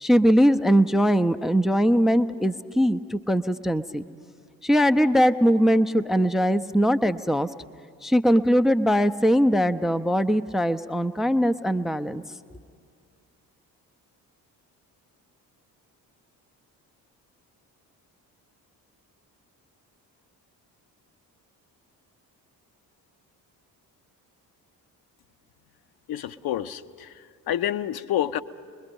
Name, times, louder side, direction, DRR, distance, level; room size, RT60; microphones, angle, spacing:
voice 1, 0.0-4.0 4.6-7.5 8.0-12.2, equal, ahead, 12 dB, 0.4 m, -21 dB
voice 2, 26.1-28.4, left 11 dB, 50° left, 13 dB, 0.7 m, -29 dB
27.0 x 21.5 x 5.3 m, 2.2 s
figure-of-eight pair, 45°, 50 cm